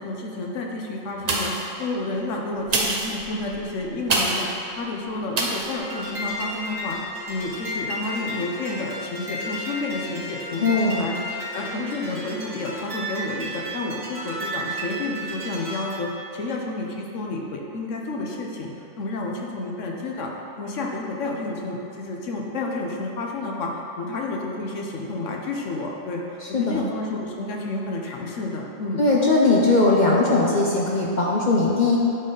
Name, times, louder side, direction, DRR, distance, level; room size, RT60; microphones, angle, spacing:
voice 1, 0.0-7.0 7.3-11.1 11.5-18.7 19.0-20.3 20.6-29.0, left 2 dB, 70° left, 0 dB, 1.1 m, -30 dB
sound 1, 1.2-1.8 2.6-4.6 5.3-5.7 6.2-6.3, right 2 dB, 40° right, 0.6 m, -26 dB
sound 2, 5.8-16.0, equal, 80° right, 1.9 m, -33 dB
voice 2, 10.6-11.1 26.5-26.9 29.0-32.0, left 3 dB, 45° left, -4 dB, 0.6 m, -19 dB
8.8 x 4.1 x 3.8 m, 2.9 s
omnidirectional pair, 1.4 m